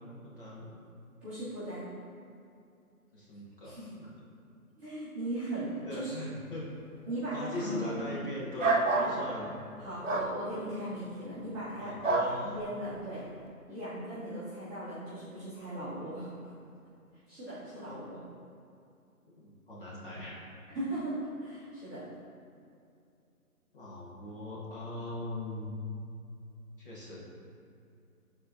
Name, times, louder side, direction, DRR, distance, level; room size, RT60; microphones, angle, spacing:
voice 1, 0.2-0.7 3.1-4.1 5.9-6.7 7.3-9.5 11.8-12.5 17.8-18.1 19.2-20.4 23.7-25.7 26.8-27.4, left 1 dB, 35° left, -7 dB, 1.2 m, -40 dB
voice 2, 1.2-1.9 3.6-3.9 4.8-6.2 7.0-8.2 9.0-9.1 9.8-11.9 12.4-13.3 13.7-16.3 17.3-18.2 20.7-22.0, right 1 dB, 5° right, -20 dB, 1.2 m, -38 dB
sound 1, 8.6-9.1 10.0-10.3 12.0-12.3, right 3 dB, 55° right, 0.8 m, -27 dB
9.1 x 4.3 x 2.7 m, 2.5 s
figure-of-eight pair, 160°, 45 cm